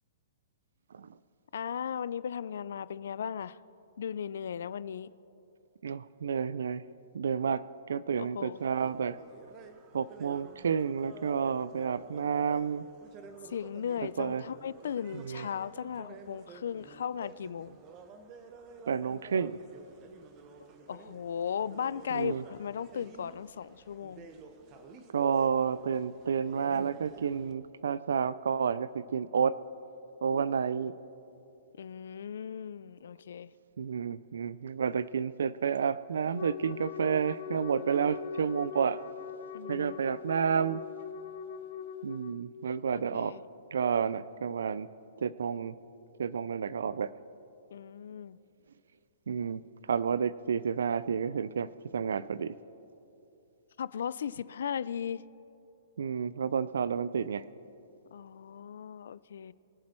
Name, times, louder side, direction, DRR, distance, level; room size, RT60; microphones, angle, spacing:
voice 1, 1.5-3.6 4.0-5.1 8.2-8.6 13.4-17.8 20.9-24.3 31.8-33.5 39.5-40.0 42.9-43.4 47.7-48.4 53.8-55.2 58.1-59.5, left 8 dB, 75° left, 18 dB, 0.4 m, -37 dB
voice 2, 5.8-6.8 7.1-9.2 9.9-12.8 14.2-14.4 15.1-15.5 18.9-19.6 22.1-22.4 25.1-29.5 30.2-30.9 33.8-39.0 39.7-40.8 42.0-43.4 43.7-44.9 45.2-45.7 46.2-47.1 49.3-49.6 49.9-51.7 51.9-52.5 56.0-57.4, right 6 dB, 85° right, 18 dB, 0.4 m, -30 dB
sound 1, 8.6-27.5, right 4 dB, 30° right, 1.1 m, -52 dB
Wind instrument woodwind instrument, 36.3-42.4, left 8 dB, 55° left, 0.9 m, -41 dB
22.5 x 7.6 x 4.4 m, 2.8 s
hypercardioid pair, 155°, 0 cm